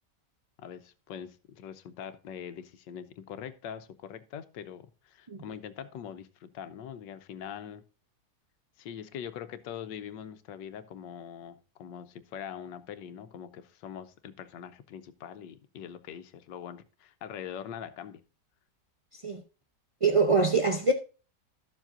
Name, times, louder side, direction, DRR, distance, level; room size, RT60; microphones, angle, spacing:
voice 1, 0.6-7.8 8.8-18.2, left 8 dB, 90° left, 1.4 m, -43 dB
voice 2, 20.0-20.9, right 4 dB, 50° right, 0.4 m, -24 dB
12.5 x 7.3 x 2.5 m
omnidirectional pair, 1.9 m